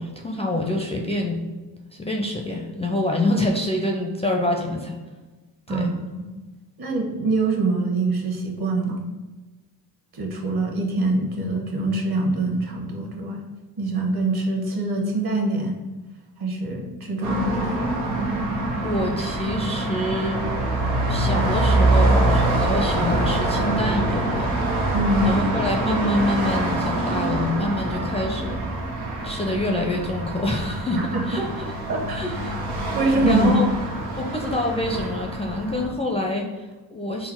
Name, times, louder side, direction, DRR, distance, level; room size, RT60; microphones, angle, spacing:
voice 1, 0.0-1.5 1.9-5.0 5.7-5.9 18.8-20.4 21.1-24.7 25.2-28.6 29.2-31.0 31.3-31.6 32.1-32.6 33.2-33.7 34.2-37.3, left 1 dB, 15° left, 0 dB, 0.5 m, -26 dB
voice 2, 5.7-6.3 6.8-9.1 10.1-13.4 13.8-15.8 16.4-17.8 24.9-25.3 31.0-31.4 31.9-32.2 32.9-33.6, right 2 dB, 50° right, 1 dB, 1.2 m, -24 dB
sound 1, 17.2-35.9, right 2 dB, 90° right, 0.9 m, -25 dB
3.8 x 2.0 x 4.4 m, 1.2 s
hypercardioid pair, 50°, 49 cm